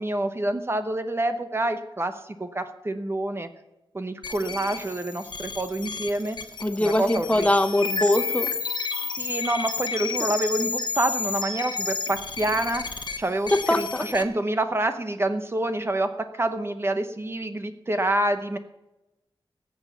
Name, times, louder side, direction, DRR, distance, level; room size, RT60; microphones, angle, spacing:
voice 1, 0.0-2.1 2.4-3.5 3.9-6.4 6.8-7.5 9.2-18.6, right 1 dB, 25° right, 8 dB, 0.9 m, -27 dB
sound 1, 4.2-14.2, left 4 dB, 55° left, 1.2 m, -31 dB
voice 2, 6.6-8.5 13.5-14.0, left 1 dB, 15° left, 8 dB, 0.9 m, -22 dB
17.5 x 7.2 x 7.1 m, 0.99 s
wide cardioid pair, 95°, 9 cm